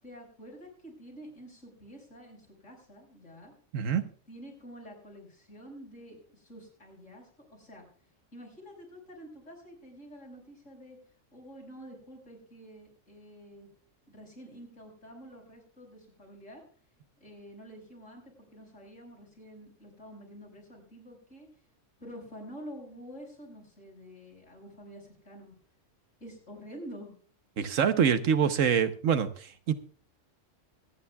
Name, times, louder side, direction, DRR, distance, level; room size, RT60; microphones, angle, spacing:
voice 1, 0.0-3.5 4.3-7.9 8.3-11.0 11.3-13.7 14.1-16.6 17.2-21.5 22.0-25.5 26.2-27.2, equal, 75° left, 5.9 m, -48 dB
voice 2, 3.7-4.1 27.6-29.7, right 7 dB, 90° right, 1.3 m, -25 dB
25.0 x 9.8 x 2.3 m
omnidirectional pair, 1.3 m